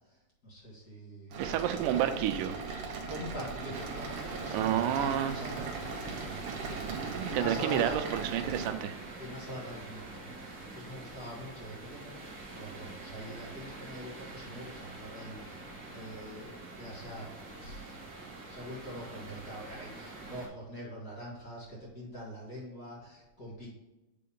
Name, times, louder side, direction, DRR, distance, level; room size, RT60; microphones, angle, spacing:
voice 1, 0.4-2.0 3.1-6.9 7.3-8.0 9.2-12.2 12.5-15.6 15.9-17.4 17.6-18.0 18.4-23.7, equal, 35° left, -6 dB, 2.3 m, -44 dB
sound 1, 1.3-8.7, right 4 dB, 65° right, 1.7 m, -39 dB
voice 2, 1.4-2.5 4.5-5.4 6.7-9.0, right 10 dB, 90° right, 8 dB, 2.1 m, -30 dB
sound 2, 3.7-20.5, right 2 dB, 45° right, 1.4 m, -45 dB
8.5 x 3.8 x 3.6 m, 1.0 s
omnidirectional pair, 3.6 m